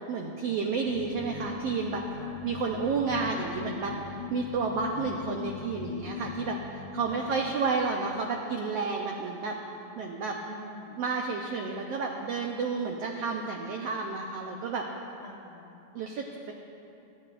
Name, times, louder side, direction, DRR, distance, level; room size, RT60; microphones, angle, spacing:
voice 1, 0.1-2.0 2.4-9.6 10.0-10.4 11.0-14.8 15.9-16.5, right 4 dB, 80° right, 0 dB, 1.4 m, -31 dB
sound 1, 0.9-8.0, left 7 dB, 75° left, 2.0 m, -40 dB
voice 2, 5.0-5.5 7.1-7.3 10.4-11.0 15.2-15.8, left 2 dB, 55° left, -4 dB, 1.7 m, -46 dB
21.5 x 10.5 x 2.5 m, 2.8 s
omnidirectional pair, 3.7 m